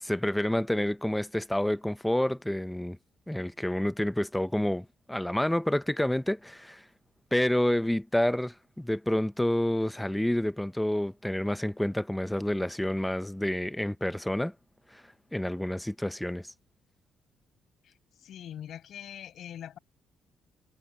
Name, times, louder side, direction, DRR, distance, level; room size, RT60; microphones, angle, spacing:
voice 1, 0.0-3.0 3.3-6.8 7.3-14.5 14.9-15.0 15.3-16.5, left 1 dB, 5° left, 0.8 m, -29 dB
voice 2, 18.2-19.8, left 10 dB, 70° left, 6.4 m, -42 dB
cardioid pair, 90°, 0 cm